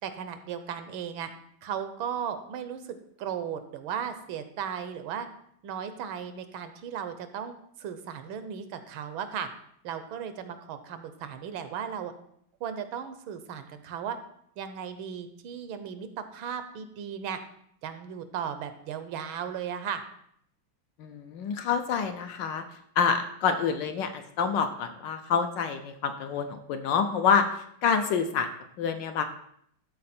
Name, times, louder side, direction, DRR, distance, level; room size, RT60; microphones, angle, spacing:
voice 1, 0.0-1.3 1.6-5.3 5.6-9.5 9.8-12.1 12.6-14.2 14.6-17.4 17.8-20.0, right 8 dB, 80° right, 10 dB, 1.5 m, -36 dB
voice 2, 21.0-22.6 23.0-28.5 28.8-29.2, left 6 dB, 70° left, 7 dB, 1.2 m, -27 dB
13.0 x 4.3 x 4.2 m, 0.69 s
omnidirectional pair, 2.3 m